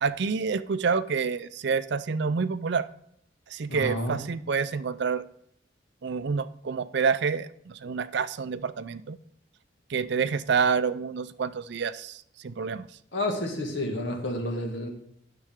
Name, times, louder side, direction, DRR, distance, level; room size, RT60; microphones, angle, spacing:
voice 1, 0.0-2.8 3.5-5.2 6.0-9.2 9.9-12.8, right 5 dB, 65° right, 14 dB, 0.5 m, -28 dB
voice 2, 3.7-4.2 13.1-14.9, left 1 dB, 70° left, 1 dB, 2.0 m, -30 dB
10.0 x 6.7 x 3.6 m, 0.71 s
head